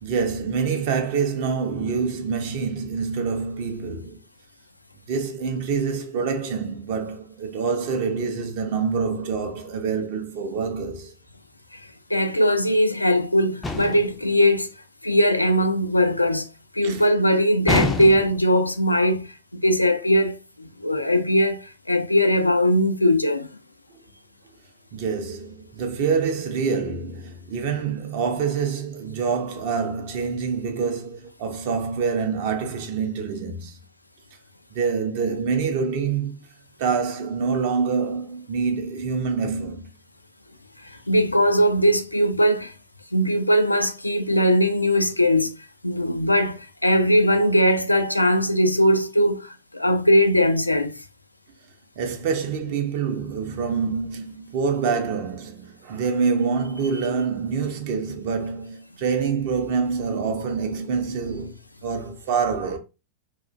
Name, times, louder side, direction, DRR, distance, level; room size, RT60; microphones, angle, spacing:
voice 1, 0.0-4.2 5.1-11.1 16.8-17.1 24.9-33.8 34.7-36.4 36.8-39.9 52.0-62.8, right 5 dB, 50° right, 0.5 m, -26 dB
voice 2, 12.1-14.7 15.0-16.5 16.7-23.5 41.1-42.7 43.1-45.5 45.8-50.9, equal, 85° left, 0.3 m, -20 dB
sound 1, 13.6-14.2 17.7-18.5, left 3 dB, 10° left, 0.4 m, -26 dB
2.4 x 2.1 x 2.4 m
figure-of-eight pair, 90°, 0 cm